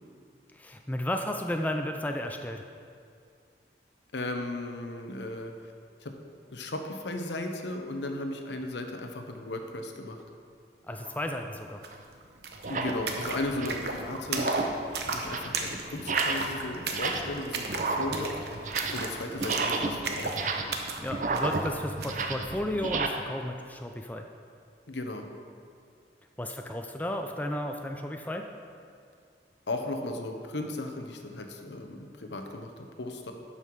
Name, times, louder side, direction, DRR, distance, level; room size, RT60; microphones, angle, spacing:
voice 1, 0.5-2.6 10.9-11.8 21.0-24.2 26.4-28.5, left 1 dB, 10° left, 4 dB, 0.4 m, -33 dB
voice 2, 4.1-5.7 6.0-6.1 6.5-10.2 12.7-14.5 15.1-18.3 18.9-20.3 24.9-25.3 29.7-33.3, left 2 dB, 85° left, 4 dB, 0.9 m, -36 dB
sound 1, 11.0-11.2 11.9-12.0 12.6-13.0 13.4-13.9 14.3-14.8 15.1-15.6 16.0-16.5 16.8-17.4 17.7-19.1 19.4-23.1, right 3 dB, 45° right, 0.6 m, -32 dB
sound 2, 11.8-11.9 12.1-22.3, right 3 dB, 70° right, 0.9 m, -35 dB
12.0 x 5.6 x 4.7 m, 2.3 s
head